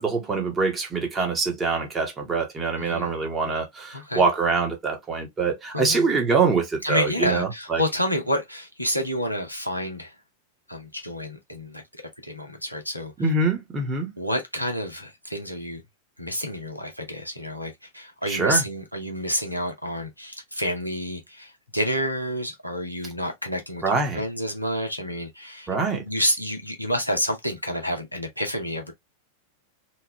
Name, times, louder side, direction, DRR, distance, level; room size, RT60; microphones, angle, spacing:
voice 1, 0.0-7.8 13.2-14.1 18.2-18.6 23.8-24.2 25.7-26.0, right 4 dB, 20° right, 1.1 m, -24 dB
voice 2, 2.8-3.1 3.9-4.2 5.7-6.1 6.8-10.1 10.7-13.3 14.2-15.8 16.2-23.8 24.1-25.7 26.0-28.9, equal, 90° left, 0.7 m, -29 dB
3.0 x 2.2 x 2.9 m
figure-of-eight pair, 90°, 0 cm